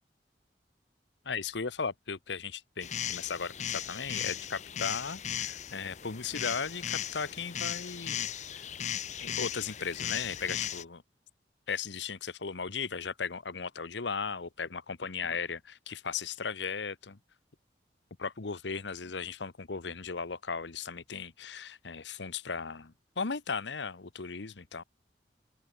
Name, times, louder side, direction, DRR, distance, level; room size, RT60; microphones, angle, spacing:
voice 1, 1.2-8.3 9.2-11.0 11.7-17.2 18.2-24.8, left 5 dB, 85° left, 1.0 m, -36 dB
sound 1, 2.8-10.8, left 9 dB, 40° left, 0.8 m, -37 dB
open air
head